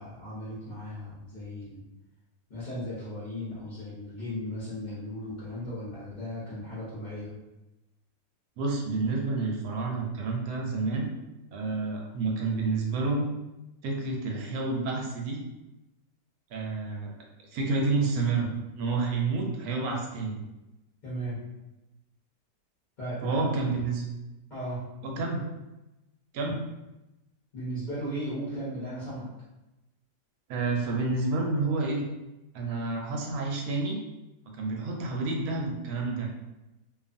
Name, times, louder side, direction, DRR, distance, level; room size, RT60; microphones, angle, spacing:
voice 1, 0.0-1.8 2.5-7.3 21.0-21.4 23.0-23.5 24.5-24.8 25.1-25.2 27.5-29.3, equal, 45° left, -10 dB, 0.6 m, -36 dB
voice 2, 8.6-11.1 11.5-13.3 13.8-15.4 16.5-17.1 17.5-18.5 18.8-20.4 23.2-24.1 25.0-25.4 26.3-26.6 30.5-32.0 32.5-34.0 34.5-36.3, right 3 dB, 70° right, 0 dB, 0.9 m, -29 dB
2.6 x 2.4 x 2.5 m, 0.99 s
omnidirectional pair, 1.9 m